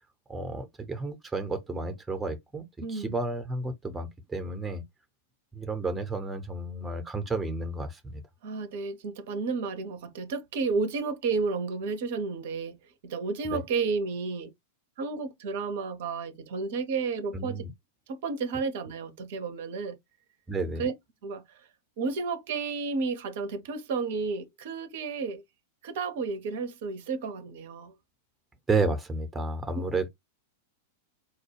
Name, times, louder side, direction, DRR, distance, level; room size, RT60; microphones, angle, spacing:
voice 1, 0.3-4.8 5.5-8.2 13.4-13.6 17.3-17.7 20.5-20.8 28.7-30.1, right 3 dB, 10° right, 0.7 m, -31 dB
voice 2, 2.8-3.2 8.4-14.5 15.0-17.6 18.1-20.0 20.8-20.9 21.2-21.7 22.0-25.4 25.8-28.0 29.7-29.8, right 4 dB, 55° right, 0.5 m, -32 dB
4.8 x 2.2 x 3.1 m
figure-of-eight pair, 95°, 0 cm